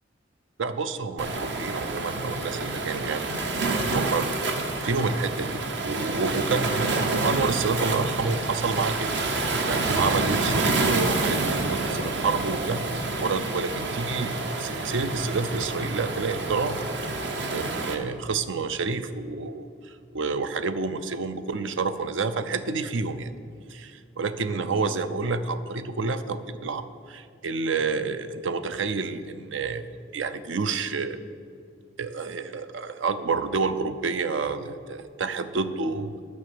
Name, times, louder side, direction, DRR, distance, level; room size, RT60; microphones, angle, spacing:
voice 1, 0.6-3.3 3.9-4.3 4.8-5.6 5.8-9.1 9.6-12.9 13.2-16.8 17.5-23.3 23.7-29.8 30.1-31.2 32.0-36.2, right 4 dB, 80° right, 12 dB, 0.6 m, -29 dB
Waves surf, 1.2-18.0, right 2 dB, 65° right, 1.0 m, -28 dB
9.5 x 6.3 x 7.7 m, 2.3 s
head